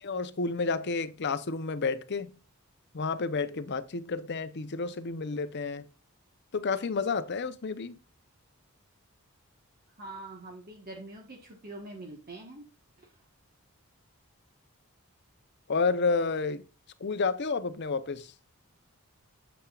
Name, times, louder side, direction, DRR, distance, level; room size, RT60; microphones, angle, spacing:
voice 1, 0.0-2.3 2.9-5.8 6.5-8.0 15.7-16.6 17.0-18.3, left 4 dB, 50° left, 0.6 m, -30 dB
voice 2, 10.0-12.7 13.0-13.1, right 2 dB, 45° right, 1.3 m, -44 dB
8.7 x 7.2 x 2.4 m
head